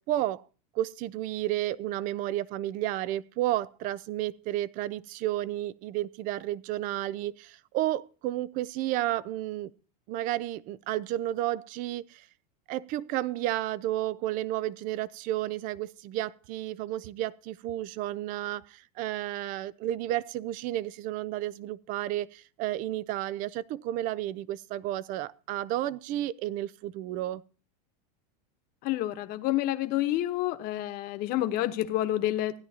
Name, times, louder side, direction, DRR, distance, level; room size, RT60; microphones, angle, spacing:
voice 1, 0.1-0.4 0.7-9.7 10.1-12.3 12.7-27.4, right 14 dB, 40° right, 0.5 m, -32 dB
voice 2, 28.8-32.5, left 14 dB, 45° left, 1.1 m, -28 dB
16.5 x 10.5 x 2.8 m
supercardioid pair, 130°, 21 cm